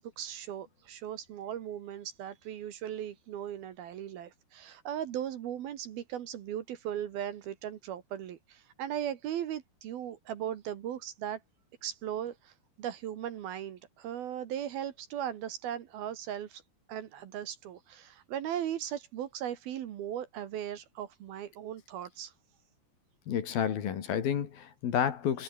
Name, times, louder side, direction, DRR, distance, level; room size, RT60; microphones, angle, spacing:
voice 1, 0.0-11.4 11.8-16.6 16.9-22.3, right 10 dB, 65° right, 3.0 m, -38 dB
voice 2, 23.3-25.4, left 8 dB, 60° left, 3.8 m, -30 dB
omnidirectional pair, 5.2 m